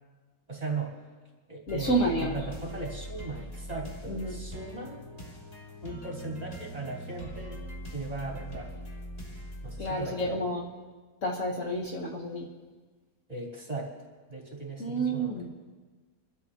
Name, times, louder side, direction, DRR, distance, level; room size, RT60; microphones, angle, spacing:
voice 1, 0.5-1.0 1.5-5.0 5.8-7.6 7.9-8.7 9.6-10.5 13.3-13.9 14.3-15.4, right 3 dB, 20° right, -3 dB, 3.0 m, -38 dB
voice 2, 1.7-2.4 4.1-4.4 9.8-10.6 11.2-12.5 14.8-15.5, right 1 dB, 50° left, -2 dB, 1.5 m, -30 dB
sound 1, 1.7-10.3, equal, 20° left, 2.3 m, -42 dB
26.0 x 12.5 x 2.9 m, 1.4 s
omnidirectional pair, 1.8 m